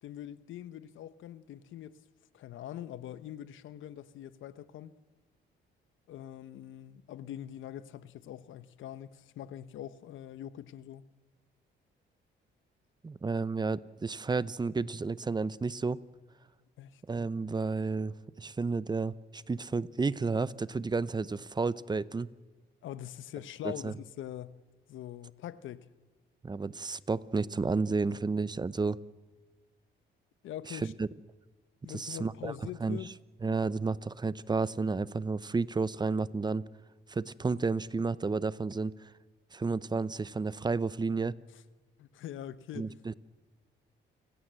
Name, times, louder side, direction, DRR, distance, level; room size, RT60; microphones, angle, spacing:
voice 1, 0.0-2.0 2.3-4.9 6.1-11.0 16.8-17.0 22.8-24.6 24.9-25.9 30.4-30.9 31.8-33.1 41.5-41.6 42.0-43.0, left 11 dB, 80° left, 1.0 m, -43 dB
voice 2, 13.0-16.0 17.1-22.3 23.6-23.9 26.4-29.0 30.7-31.1 31.9-32.5 32.8-33.0 33.4-36.7 37.1-38.9 39.5-41.3 42.8-43.1, right 4 dB, 20° right, 0.7 m, -31 dB
29.5 x 16.0 x 7.6 m
cardioid pair, 90°, 20 cm